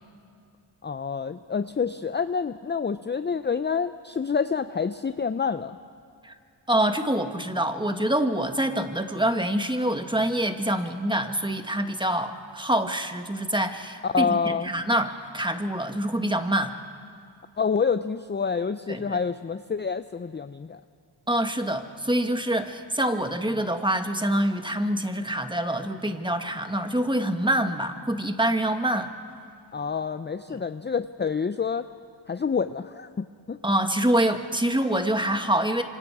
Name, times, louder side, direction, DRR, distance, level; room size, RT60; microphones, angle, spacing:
voice 1, 0.8-5.8 14.0-14.7 17.6-20.8 29.7-31.8 32.3-33.6, left 5 dB, 25° left, 11 dB, 0.5 m, -27 dB
voice 2, 6.7-16.7 18.9-19.2 21.3-29.1 33.6-35.8, right 1 dB, 10° right, 6 dB, 1.6 m, -26 dB
26.5 x 25.5 x 4.9 m, 2.4 s
cardioid pair, 60°, 46 cm